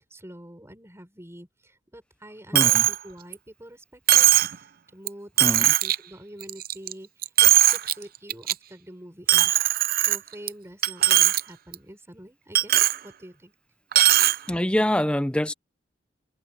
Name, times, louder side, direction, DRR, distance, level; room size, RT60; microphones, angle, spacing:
voice 1, 0.1-4.3 4.6-4.7 4.9-9.6 10.1-13.5, equal, 15° right, 6.1 m, -46 dB
voice 2, 2.5-2.9 5.4-5.7 14.5-15.5, left 1 dB, 5° left, 0.6 m, -25 dB
Coin (dropping), 2.5-3.0 3.3-3.4 4.1-4.5 5.1-5.2 5.4-5.9 6.4-6.9 7.2-7.9 8.3-8.5 9.3-10.5 10.8-11.4 11.7-11.8 12.5-13.0 13.9-14.4, right 14 dB, 55° right, 0.6 m, -19 dB
head